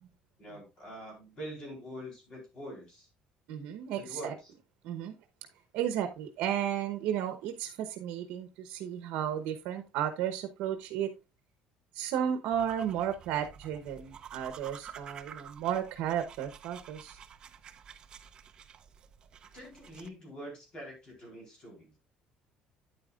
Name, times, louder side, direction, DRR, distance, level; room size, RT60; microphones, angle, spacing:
voice 1, 0.4-3.1 3.9-4.5 19.5-22.0, equal, 30° left, 3.9 m, -45 dB
voice 2, 3.5-4.3 4.8-5.1 5.7-11.1 11.9-17.2, right 10 dB, 70° right, 0.9 m, -33 dB
sound 1, 12.5-20.1, right 8 dB, 30° right, 0.5 m, -50 dB
9.2 x 8.8 x 2.4 m
cardioid pair, 170°, 3 cm